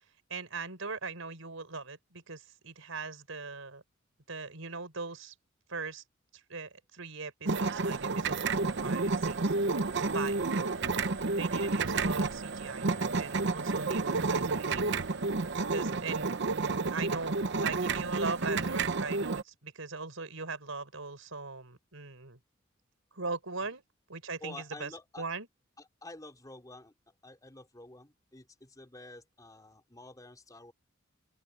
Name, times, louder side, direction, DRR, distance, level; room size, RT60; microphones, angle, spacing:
voice 1, 0.3-3.8 4.3-5.3 5.7-6.0 6.3-9.5 10.1-10.4 11.3-14.9 15.7-16.3 16.9-22.4 23.1-23.8 24.1-24.9 25.2-25.5, right 4 dB, 80° right, 4.6 m, -40 dB
sound 1, 7.5-19.4, right 3 dB, 60° right, 0.9 m, -30 dB
voice 2, 24.4-25.3 25.8-26.9 27.2-30.7, left 2 dB, 20° left, 3.6 m, -49 dB
open air
head